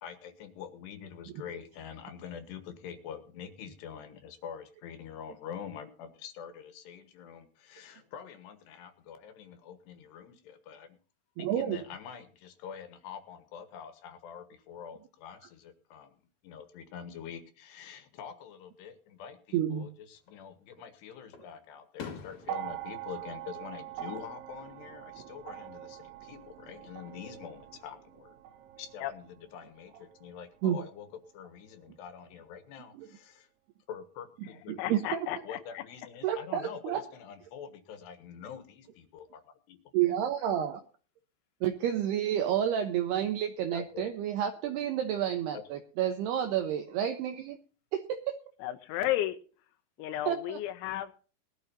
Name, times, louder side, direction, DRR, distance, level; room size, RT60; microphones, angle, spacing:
voice 1, 0.0-11.0 11.4-28.4 28.7-33.5 33.9-35.0 35.4-39.8 43.7-44.1 45.5-45.6, left 8 dB, 70° left, 10 dB, 3.3 m, -45 dB
voice 2, 11.4-11.8 19.5-19.9 30.6-30.8 33.0-33.1 34.7-35.2 36.2-37.0 39.9-40.8 41.6-47.6 47.9-48.2 50.3-50.6, right 10 dB, 70° right, 6 dB, 2.8 m, -30 dB
Fireworks, 20.2-20.9 21.3-24.5 24.8-25.3 26.9-27.7, left 6 dB, 45° left, 2.9 m, -49 dB
sound 1, 22.4-30.8 31.8-31.9, right 12 dB, 90° right, 3.6 m, -44 dB
voice 3, 34.8-35.8 48.6-49.4 50.0-51.1, left 13 dB, 90° left, 7 dB, 3.2 m, -33 dB
20.5 x 12.5 x 2.7 m, 0.38 s
omnidirectional pair, 5.4 m